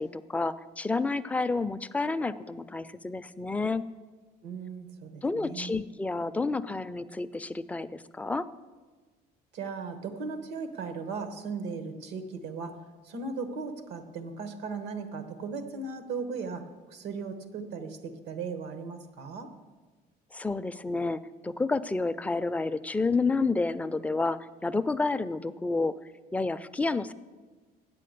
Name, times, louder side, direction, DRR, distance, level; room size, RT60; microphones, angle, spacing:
voice 1, 0.0-3.8 5.2-8.5 20.3-25.9 26.3-27.1, left 3 dB, 10° left, 11 dB, 0.3 m, -30 dB
voice 2, 4.4-5.8 9.5-19.5, right 4 dB, 90° right, 9 dB, 1.1 m, -37 dB
8.4 x 7.7 x 6.5 m, 1.3 s
cardioid pair, 110°, 17 cm